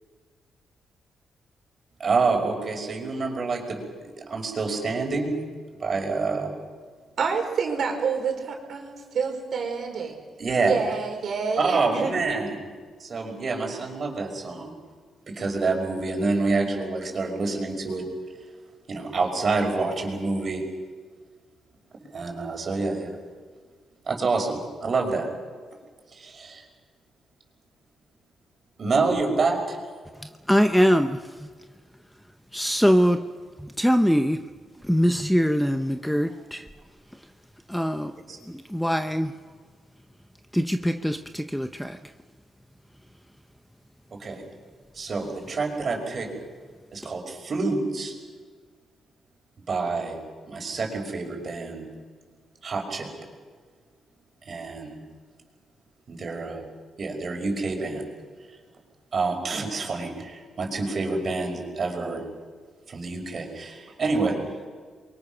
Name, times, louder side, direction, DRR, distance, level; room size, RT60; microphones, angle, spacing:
voice 1, 2.0-5.4 5.8-6.5 10.4-10.9 11.6-12.7 13.0-14.8 15.3-18.1 18.9-20.6 22.1-23.2 24.1-25.3 26.1-26.6 28.8-29.8 38.3-38.4 44.1-44.4 44.9-46.3 46.9-48.1 49.7-50.2 50.5-51.9 52.6-53.1 54.5-55.0 56.1-56.6 57.0-58.1 59.1-62.2 62.9-64.4, right 3 dB, 40° right, 2 dB, 5.5 m, -27 dB
voice 2, 7.2-8.8 9.1-10.2 10.7-12.1, right 5 dB, 60° right, 2 dB, 4.6 m, -27 dB
voice 3, 30.5-31.5 32.5-33.2 33.6-34.4 34.8-36.7 37.7-38.1 38.5-39.3 40.5-42.0, equal, ahead, 8 dB, 0.8 m, -22 dB
28.5 x 23.0 x 6.1 m, 1.5 s
cardioid pair, 130°, 0 cm